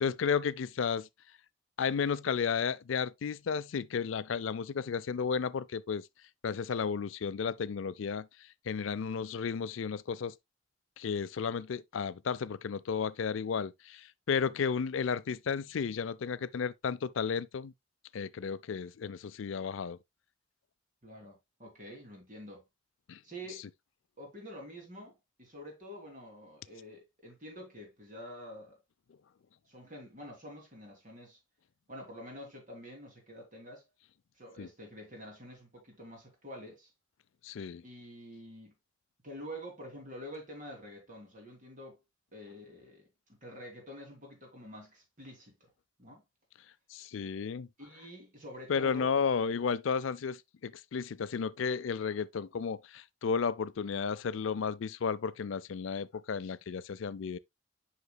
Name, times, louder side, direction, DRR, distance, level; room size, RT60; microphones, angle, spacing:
voice 1, 0.0-1.1 1.8-6.0 6.4-8.3 8.7-10.3 11.0-17.7 18.1-20.0 23.1-23.2 34.6-34.7 37.4-37.8 46.9-47.7 48.7-57.4, left 6 dB, 70° left, 0.4 m, -33 dB
voice 2, 21.0-22.6 23.2-23.7 24.2-28.8 29.6-31.4 31.9-33.8 34.3-36.9 37.8-38.7 39.2-42.0 42.3-45.7 46.0-46.2 47.4-47.5 47.8-49.3, equal, 40° right, 2.9 m, -47 dB
8.1 x 5.9 x 2.2 m
head